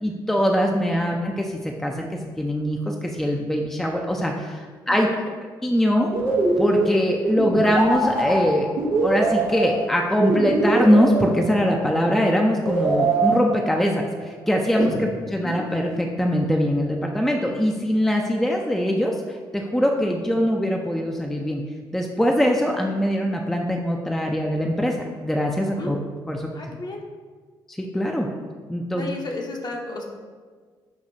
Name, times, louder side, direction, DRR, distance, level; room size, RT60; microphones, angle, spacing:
voice 1, 0.0-5.1 5.6-6.1 6.6-8.7 9.0-21.6 21.9-26.0 26.3-26.8 27.7-28.3 28.7-29.1, equal, 5° left, 1 dB, 0.4 m, -22 dB
voice 2, 4.9-5.2 14.9-15.0 25.8-26.0 26.5-27.1 28.9-30.0, left 2 dB, 40° left, 1 dB, 0.8 m, -33 dB
sound 1, 6.1-12.0 12.7-14.0 14.7-16.2, right 3 dB, 90° right, 0.8 m, -24 dB
6.4 x 2.4 x 2.7 m, 1.5 s
hypercardioid pair, 45°, 11 cm